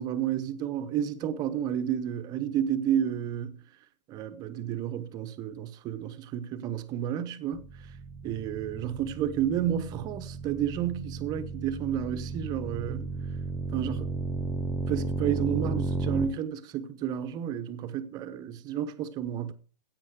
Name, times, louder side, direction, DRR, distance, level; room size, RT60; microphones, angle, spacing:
voice 1, 0.0-3.5 4.1-7.7 8.2-13.1 13.7-14.1 14.9-19.5, right 10 dB, 20° right, 0.9 m, -31 dB
sound 1, 7.5-16.3, right 3 dB, 5° right, 1.1 m, -34 dB
15.0 x 8.9 x 4.8 m
hypercardioid pair, 155°, 21 cm